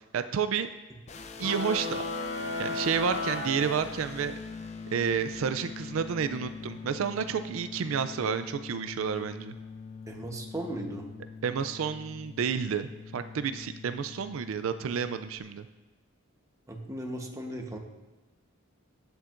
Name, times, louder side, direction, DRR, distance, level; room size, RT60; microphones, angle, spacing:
voice 1, 0.1-0.7 1.4-2.0 2.6-4.3 4.9-9.5 11.4-15.7, right 7 dB, 80° right, 11 dB, 0.4 m, -30 dB
sound 1, 1.1-15.4, left 5 dB, 35° left, 0.5 m, -43 dB
sound 2, 1.4-4.4, left 3 dB, 70° left, 1.2 m, -34 dB
voice 2, 10.1-11.1 16.7-17.8, right 1 dB, 15° right, 2 dB, 1.0 m, -36 dB
16.5 x 7.2 x 2.5 m, 1.2 s
head